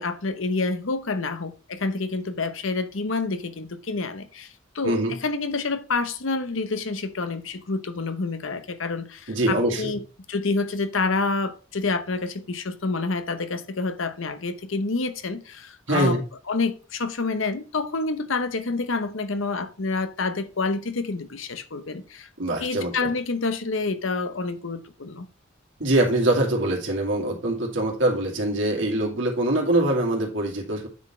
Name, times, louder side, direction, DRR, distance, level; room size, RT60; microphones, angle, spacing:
voice 1, 0.0-16.2 16.5-22.3 22.6-25.3, left 3 dB, 75° left, 0.9 m, -28 dB
voice 2, 4.8-5.1 9.3-10.0 15.9-16.2 22.4-22.9 25.8-30.9, right 1 dB, 70° right, 2.5 m, -23 dB
9.5 x 4.2 x 4.3 m
head